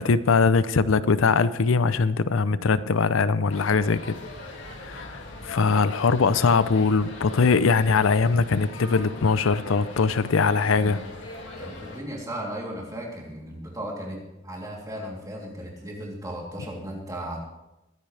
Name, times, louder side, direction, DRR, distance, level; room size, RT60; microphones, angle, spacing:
voice 1, 0.0-4.2 4.8-11.0, left 4 dB, 90° left, 15 dB, 0.5 m, -21 dB
sound 1, 3.5-12.0, left 2 dB, 70° left, 2.3 m, -41 dB
voice 2, 10.8-11.1 11.6-17.4, right 1 dB, 15° right, -2 dB, 3.1 m, -36 dB
21.0 x 10.5 x 3.4 m, 0.95 s
head